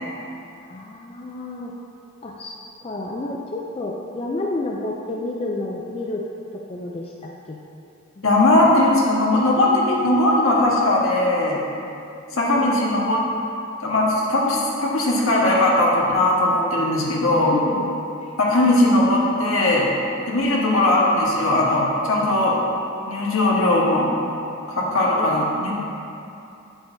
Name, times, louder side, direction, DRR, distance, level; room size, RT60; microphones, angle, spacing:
voice 1, 0.6-1.7 2.2-2.5 2.8-6.2 6.7-7.6 8.2-8.6 12.3-12.8 17.4-17.9 18.2-18.3 25.2-25.7, left 2 dB, 25° left, -2 dB, 0.4 m, -30 dB
voice 2, 8.2-11.6 12.4-13.2 13.8-17.5 18.4-19.9 20.3-22.6 23.1-24.1 24.7-25.7, left 1 dB, 70° left, -4 dB, 1.4 m, -19 dB
8.1 x 7.9 x 2.7 m, 2.7 s
head